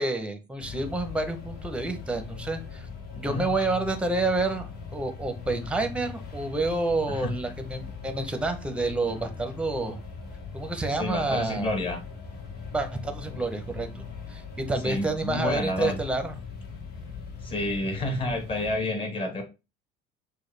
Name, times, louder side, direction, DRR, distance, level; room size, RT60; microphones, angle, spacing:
voice 1, 0.0-2.9 3.1-10.0 10.5-11.7 12.7-16.3, right 2 dB, 5° right, 0.7 m, -29 dB
sound 1, 0.6-18.8, left 5 dB, 50° left, 1.1 m, -40 dB
voice 2, 3.1-3.5 7.1-7.3 10.9-12.0 14.8-16.0 17.4-19.4, left 2 dB, 25° left, 1.1 m, -29 dB
6.3 x 2.2 x 3.2 m
cardioid pair, 135°, 21 cm